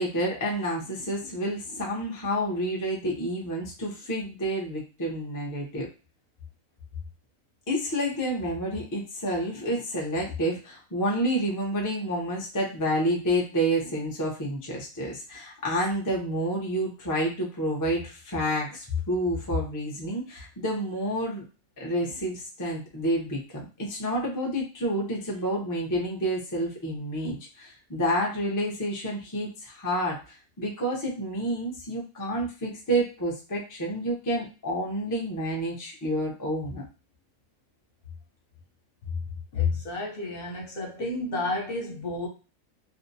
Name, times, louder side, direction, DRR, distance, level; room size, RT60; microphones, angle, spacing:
voice 1, 0.0-5.9 7.7-21.4 21.8-36.8, equal, 30° left, -2 dB, 0.3 m, -29 dB
voice 2, 39.5-42.3, left 3 dB, 50° left, -1 dB, 0.8 m, -30 dB
2.5 x 2.0 x 2.6 m, 0.33 s
omnidirectional pair, 1.4 m